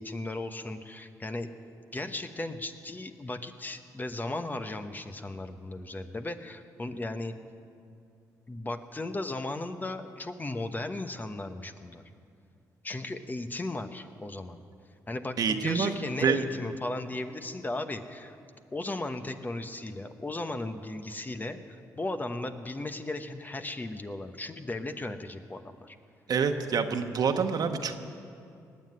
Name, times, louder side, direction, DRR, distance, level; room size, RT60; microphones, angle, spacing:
voice 1, 0.0-1.5 1.9-7.4 8.5-12.0 12.8-14.6 15.1-18.4 18.7-26.0, left 2 dB, 25° left, 8 dB, 1.0 m, -36 dB
voice 2, 15.4-15.9 16.2-16.4 26.3-27.9, right 6 dB, 60° right, 6 dB, 1.2 m, -26 dB
19.0 x 7.6 x 9.6 m, 2.4 s
supercardioid pair, 65°, 7 cm